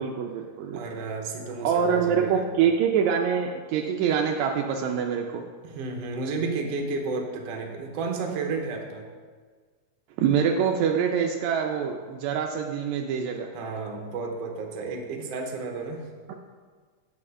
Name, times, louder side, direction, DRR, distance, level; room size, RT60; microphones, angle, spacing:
voice 1, 0.0-0.8 1.6-5.4 10.2-13.5, right 7 dB, 85° right, 2 dB, 1.6 m, -25 dB
voice 2, 0.7-2.5 5.6-9.0 13.5-16.0, right 4 dB, 70° right, 3 dB, 1.6 m, -32 dB
8.7 x 5.1 x 5.4 m, 1.6 s
omnidirectional pair, 3.8 m